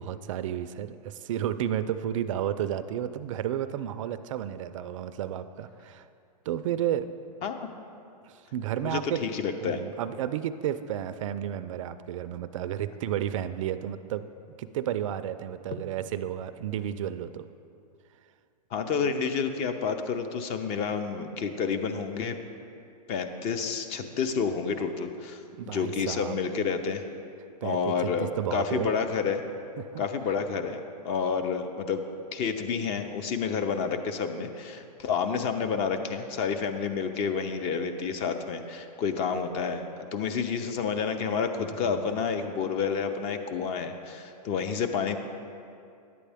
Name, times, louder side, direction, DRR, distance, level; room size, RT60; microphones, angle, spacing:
voice 1, 0.0-6.1 6.5-7.1 8.3-9.2 9.6-14.2 14.6-17.5 25.6-26.4 27.6-28.9 29.8-30.0 41.8-42.1, right 10 dB, 50° right, 12 dB, 0.4 m, -32 dB
voice 2, 8.8-9.8 18.7-22.4 23.1-25.4 25.7-27.0 27.6-29.4 30.0-32.0 32.3-45.2, left 6 dB, 30° left, 7 dB, 0.6 m, -29 dB
11.0 x 8.4 x 3.4 m, 2.5 s
hypercardioid pair, 135°, 21 cm